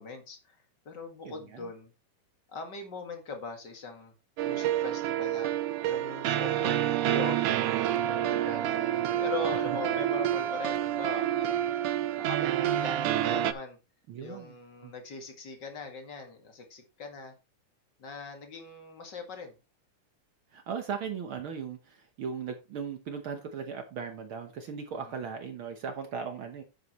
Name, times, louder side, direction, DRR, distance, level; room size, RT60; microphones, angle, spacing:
voice 1, 0.0-1.9 2.5-4.1 4.4-5.5 5.9-7.6 8.1-11.7 12.2-13.8 14.2-17.3 18.0-19.5 25.0-25.2, left 3 dB, 40° left, 4 dB, 2.1 m, -41 dB
voice 2, 1.2-1.7 9.7-9.8 14.1-14.5 14.8-14.9 20.5-26.6, right 6 dB, 65° right, 7 dB, 1.3 m, -38 dB
sound 1, 4.4-13.5, right 11 dB, 85° right, 2.3 m, -28 dB
10.0 x 8.1 x 3.1 m, 0.29 s
omnidirectional pair, 3.6 m